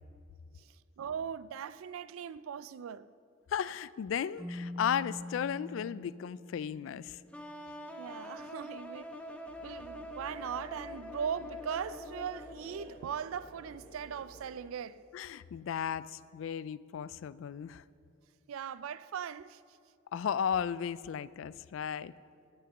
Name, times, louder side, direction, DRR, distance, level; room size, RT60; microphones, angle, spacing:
voice 1, 1.0-3.1 8.0-9.1 9.6-15.0 18.5-19.6, right 7 dB, 85° right, 0.4 m, -39 dB
voice 2, 3.5-7.2 15.1-17.8 20.1-22.1, left 8 dB, 70° left, 0.3 m, -35 dB
Keyboard (musical), 4.4-7.6, left 1 dB, 20° right, 2.0 m, -44 dB
sound 1, 7.3-13.1, left 1 dB, 5° left, 0.7 m, -45 dB
sound 2, 9.5-14.5, equal, 40° left, 2.3 m, -54 dB
17.5 x 5.9 x 7.1 m
head